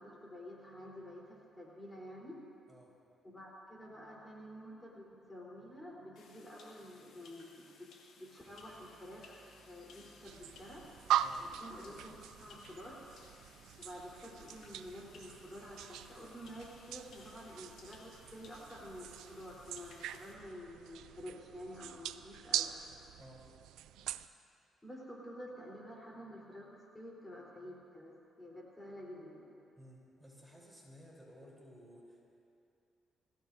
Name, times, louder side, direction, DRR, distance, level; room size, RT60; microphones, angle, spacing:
voice 1, 0.0-2.4 3.2-10.9 11.4-13.0 13.8-22.7 23.9-24.0 24.8-29.6, equal, 15° left, -4 dB, 3.9 m, -50 dB
sound 1, 6.2-20.3, left 4 dB, 75° left, 2.1 m, -61 dB
sound 2, 8.4-14.5, right 4 dB, 55° right, 1.5 m, -66 dB
sound 3, 10.2-24.3, right 11 dB, 90° right, 0.4 m, -41 dB
voice 2, 29.8-32.2, equal, 5° right, -4 dB, 3.8 m, -56 dB
26.0 x 16.0 x 2.7 m, 2.6 s
cardioid pair, 90°, 0 cm